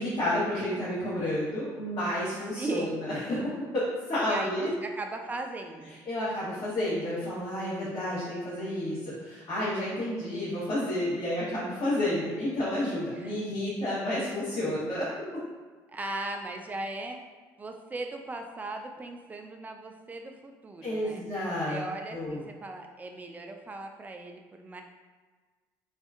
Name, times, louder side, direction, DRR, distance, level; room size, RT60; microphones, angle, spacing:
voice 1, 0.0-3.4 3.7-4.7 6.1-15.1 20.8-21.8 22.1-22.4, left 1 dB, 55° left, -10 dB, 1.0 m, -30 dB
voice 2, 2.5-3.0 4.2-6.0 11.9-12.0 13.1-13.4 15.9-17.2 17.6-24.8, right 2 dB, 20° right, 4 dB, 0.3 m, -38 dB
2.7 x 2.3 x 2.3 m, 1.4 s
supercardioid pair, 80°, 9 cm